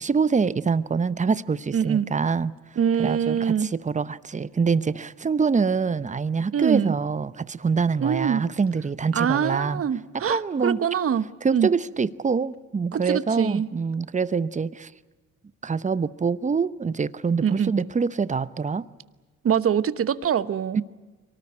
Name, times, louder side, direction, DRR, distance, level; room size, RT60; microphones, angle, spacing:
voice 1, 0.0-2.5 3.0-9.8 10.1-10.8 11.4-14.9 15.6-18.8 20.7-20.8, right 5 dB, 25° right, 16 dB, 0.8 m, -25 dB
voice 2, 1.7-2.1 2.8-3.7 6.5-6.9 8.0-8.4 9.1-11.3 11.5-11.7 12.9-13.7 17.4-17.7 19.4-20.8, right 8 dB, 50° right, 14 dB, 1.1 m, -24 dB
23.5 x 19.0 x 9.8 m, 1.2 s
cardioid pair, 90°, 30 cm